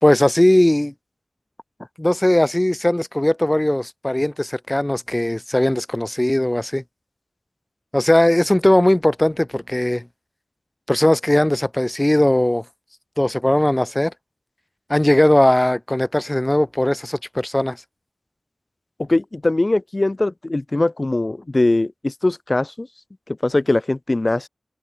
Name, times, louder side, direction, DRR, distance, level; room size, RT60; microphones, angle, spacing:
voice 1, 0.0-0.9 2.0-6.8 7.9-10.0 10.9-12.6 13.2-14.1 14.9-17.8, left 1 dB, 15° left, 2.9 m, -18 dB
voice 2, 19.0-22.9 23.3-24.5, left 2 dB, 35° left, 2.3 m, -21 dB
open air
wide cardioid pair, 70°, 0 cm